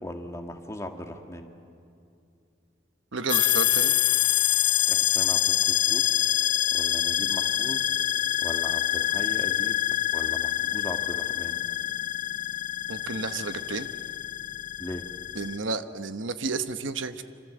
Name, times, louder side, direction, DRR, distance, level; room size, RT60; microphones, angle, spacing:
voice 1, 0.0-1.5 4.9-6.2 6.7-7.9 8.4-9.8 10.1-11.6 14.8-15.0, left 1 dB, 15° left, 4 dB, 1.7 m, -38 dB
voice 2, 3.1-3.9 12.9-13.9 15.3-17.2, right 4 dB, 75° right, 10 dB, 1.1 m, -31 dB
sound 1, 3.3-15.6, left 12 dB, 40° left, 0.7 m, -26 dB
27.5 x 26.5 x 7.8 m, 2.5 s
head